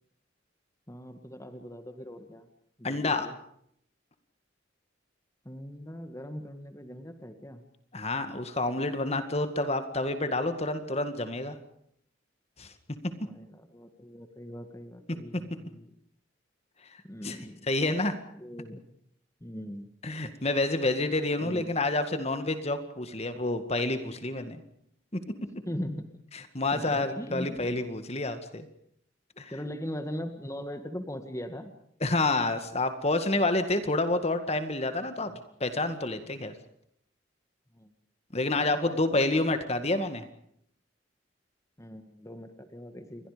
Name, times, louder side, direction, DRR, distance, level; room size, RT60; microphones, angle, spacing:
voice 1, 0.9-2.5 2.8-3.3 5.4-7.6 13.0-15.9 17.0-17.7 17.9-18.0 18.4-18.8 19.4-19.9 21.4-21.7 25.6-26.1 26.7-27.7 29.5-31.7 35.3-35.4 37.7-37.9 38.5-39.4 41.8-43.3, equal, 15° left, 7 dB, 1.9 m, -40 dB
voice 2, 2.8-3.3 7.9-11.6 12.6-12.7 15.3-15.5 17.2-17.4 17.7-18.2 20.0-24.6 26.3-28.7 29.4-29.5 32.0-35.3 35.6-36.5 38.3-40.2, left 2 dB, 35° left, 9 dB, 2.0 m, -28 dB
29.0 x 23.0 x 5.2 m, 0.70 s
head